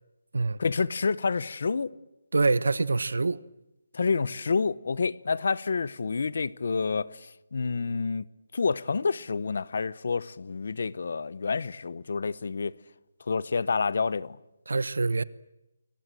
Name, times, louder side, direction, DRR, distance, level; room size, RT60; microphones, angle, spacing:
voice 1, 0.6-1.9 3.9-7.1 7.5-8.2 8.5-12.8 13.3-14.4, left 4 dB, 45° left, 0.9 m, -28 dB
voice 2, 2.3-3.4 14.7-15.2, right 3 dB, 80° right, 1.0 m, -25 dB
30.0 x 22.5 x 7.7 m
hypercardioid pair, 180°, 0 cm